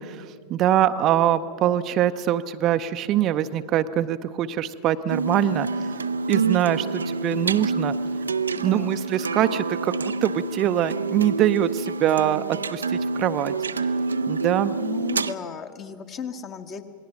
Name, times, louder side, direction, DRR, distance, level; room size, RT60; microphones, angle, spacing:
voice 1, 0.0-5.7 6.3-7.9 8.6-13.5 14.3-14.7, right 11 dB, 35° right, 10 dB, 0.6 m, -23 dB
sound 1, 5.1-15.3, right 4 dB, 75° right, 0.5 m, -27 dB
voice 2, 8.5-9.0 14.8-16.8, left 6 dB, 30° left, 7 dB, 1.5 m, -35 dB
27.5 x 19.5 x 6.0 m, 2.2 s
figure-of-eight pair, 90°, 0 cm